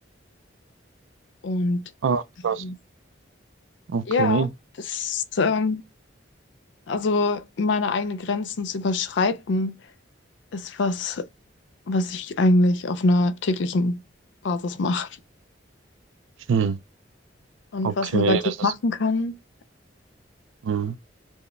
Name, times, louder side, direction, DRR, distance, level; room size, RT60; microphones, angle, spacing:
voice 1, 1.4-1.9 2.6-2.7 4.1-4.5 4.9-5.8 6.9-9.8 10.5-11.3 11.9-14.0 14.4-15.1 17.7-19.4, left 2 dB, 70° left, 0.4 m, -24 dB
voice 2, 2.0-2.6 3.9-4.5 16.5-16.8 17.8-18.7 20.6-21.0, right 5 dB, 85° right, 0.4 m, -24 dB
4.4 x 2.2 x 3.1 m
head